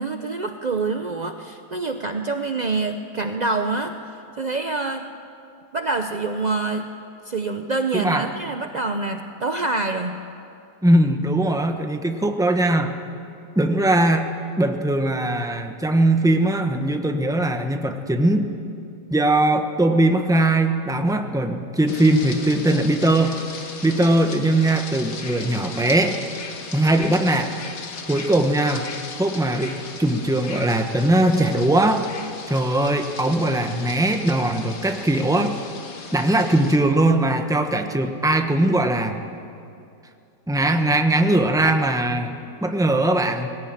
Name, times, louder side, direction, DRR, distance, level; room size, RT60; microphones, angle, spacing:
voice 1, 0.0-3.9 4.4-5.1 5.7-6.9 7.2-10.2, right 3 dB, 65° right, 6 dB, 0.4 m, -26 dB
voice 2, 7.9-8.3 10.8-12.9 13.6-14.3 14.6-18.5 19.1-23.4 23.8-26.1 26.7-27.5 28.1-28.9 29.2-32.1 32.5-35.5 36.1-39.2 40.5-43.5, right 1 dB, 5° right, 5 dB, 0.7 m, -20 dB
sound 1, 21.9-36.8, left 4 dB, 55° left, 1.8 m, -37 dB
19.0 x 16.5 x 9.0 m, 2.6 s
omnidirectional pair, 1.9 m